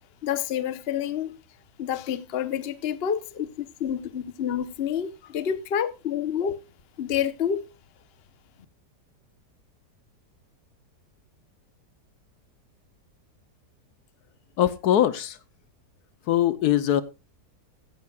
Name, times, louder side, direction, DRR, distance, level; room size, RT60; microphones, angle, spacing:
voice 1, 0.2-1.4 1.8-6.6 7.0-7.6, left 9 dB, 45° left, 1.0 m, -28 dB
voice 2, 14.6-15.4 16.3-17.0, left 11 dB, 70° left, 1.2 m, -22 dB
15.5 x 11.0 x 2.3 m
omnidirectional pair, 1.8 m